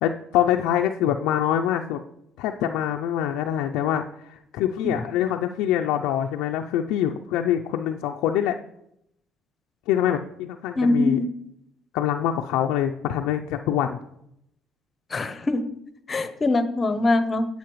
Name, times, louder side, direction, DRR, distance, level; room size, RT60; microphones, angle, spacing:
voice 1, 0.0-2.0 2.4-8.6 9.9-11.2 11.9-14.0, left 10 dB, 85° left, 4 dB, 0.4 m, -25 dB
voice 2, 10.8-11.3 15.1-15.6 16.1-17.5, left 2 dB, 30° left, 10 dB, 0.7 m, -22 dB
9.3 x 6.8 x 3.1 m, 0.77 s
cardioid pair, 90°, 0 cm